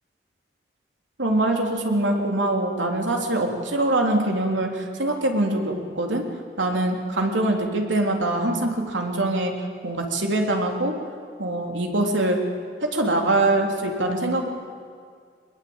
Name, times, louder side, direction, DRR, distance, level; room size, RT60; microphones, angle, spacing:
voice 1, 1.2-6.2 6.6-9.5 9.8-10.9 11.4-12.4 12.8-14.5, right 2 dB, 90° right, 2 dB, 3.4 m, -23 dB
23.0 x 21.0 x 8.9 m, 2.1 s
head